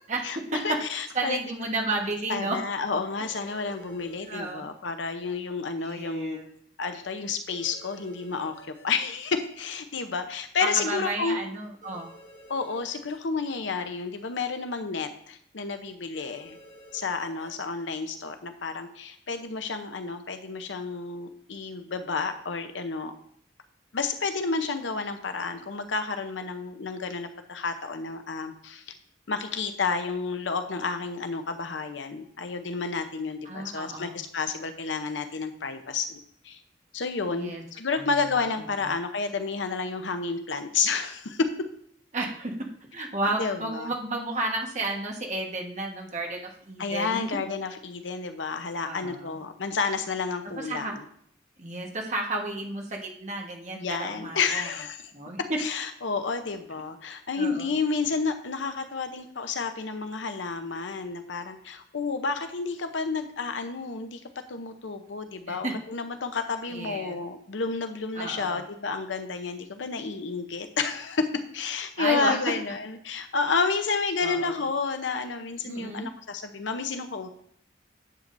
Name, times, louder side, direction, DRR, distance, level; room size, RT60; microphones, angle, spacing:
voice 1, 0.2-1.4 2.3-6.4 6.8-11.4 12.5-16.6 16.9-23.1 23.9-28.9 29.3-36.2 36.4-36.6 36.9-41.5 43.4-43.9 46.8-51.1 53.7-55.1 55.4-64.2 64.5-77.3, left 4 dB, 90° left, 8 dB, 0.7 m, -30 dB
voice 2, 1.1-2.6 4.3-4.7 5.8-6.4 10.6-12.1 33.4-34.2 37.3-37.6 37.9-38.1 42.1-42.5 42.9-47.2 48.8-49.4 50.6-50.9 51.6-54.7 55.1-55.4 57.4-57.7 65.5-65.7 66.7-67.2 68.1-68.6 72.0-72.4 74.2-74.6 75.6-76.1, right 2 dB, 40° right, 1 dB, 1.3 m, -32 dB
sound 1, 3.2-4.5 7.5-8.8 11.8-13.2 16.1-17.5, equal, 45° left, 3.1 m, -50 dB
10.5 x 7.5 x 2.6 m, 0.66 s
head